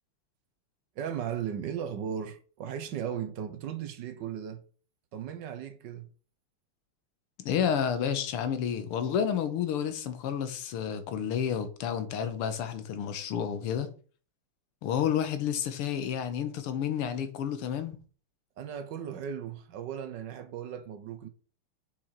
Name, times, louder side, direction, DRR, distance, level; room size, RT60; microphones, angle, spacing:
voice 1, 0.9-4.6 5.1-6.1 18.6-21.3, right 8 dB, 65° right, 1.3 m, -36 dB
voice 2, 7.4-13.9 14.8-18.0, left 8 dB, 85° left, 1.9 m, -30 dB
6.4 x 6.0 x 4.5 m
omnidirectional pair, 2.4 m